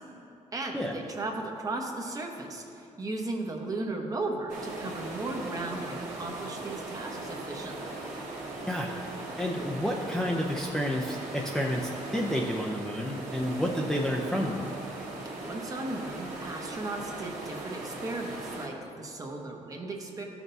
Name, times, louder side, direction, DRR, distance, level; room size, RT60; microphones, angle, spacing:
voice 1, 0.5-8.0 15.4-20.2, right 2 dB, 30° right, 1 dB, 0.9 m, -36 dB
Mar desde la orilla movimiento +lowshelf, 4.5-18.7, right 2 dB, 90° right, 1.7 m, -39 dB
voice 2, 8.7-9.0 9.4-14.7, equal, 5° left, -2 dB, 0.5 m, -30 dB
13.5 x 6.0 x 2.7 m, 2.8 s
cardioid pair, 135°, 13 cm